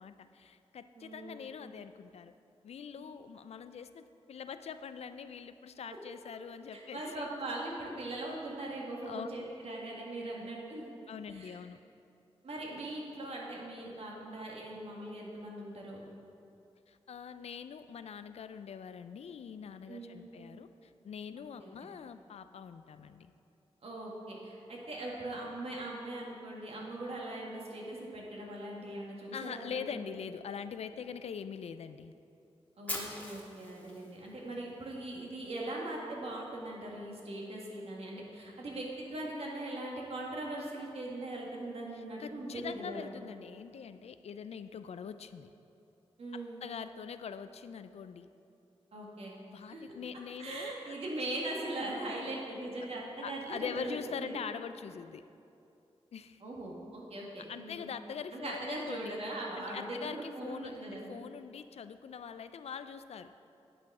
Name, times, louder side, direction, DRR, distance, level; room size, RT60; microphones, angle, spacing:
voice 1, 0.0-2.3 2.6-7.3 9.1-9.3 10.4-10.5 11.1-11.8 16.9-23.3 29.3-32.1 41.9-45.5 46.3-48.3 49.5-51.0 53.2-55.2 56.1-56.4 57.5-59.2 59.6-63.3, left 7 dB, 75° left, 11 dB, 0.4 m, -43 dB
voice 2, 1.0-1.5 6.7-10.9 11.3-11.6 12.4-16.1 19.9-20.3 21.4-21.9 23.8-29.9 32.8-43.1 46.2-46.6 48.9-49.3 49.7-49.8 50.4-54.4 56.4-57.9 58.3-61.1, right 1 dB, 65° right, -3 dB, 1.8 m, -40 dB
Fire, 32.9-34.9, left 1 dB, 15° left, 1.5 m, -41 dB
10.0 x 6.1 x 4.8 m, 2.7 s
cardioid pair, 75°, 11 cm